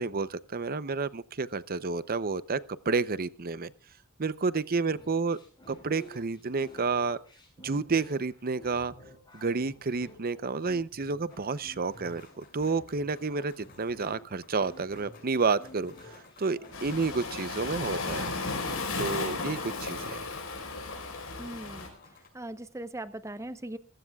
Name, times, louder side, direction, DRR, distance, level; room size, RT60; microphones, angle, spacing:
voice 1, 0.0-3.7 4.2-5.4 5.7-7.2 7.6-8.9 9.3-15.9 16.4-18.3 19.0-20.2, right 4 dB, 45° right, 0.7 m, -30 dB
sound 1, 4.9-20.8, equal, 20° left, 7.4 m, -51 dB
sound 2, 11.3-22.3, left 3 dB, 45° left, 6.2 m, -57 dB
Waves surf, 16.7-21.9, left 3 dB, 75° left, 4.8 m, -34 dB
voice 2, 21.4-21.9 22.3-23.8, right 1 dB, 15° right, 0.9 m, -39 dB
27.5 x 15.5 x 2.4 m
head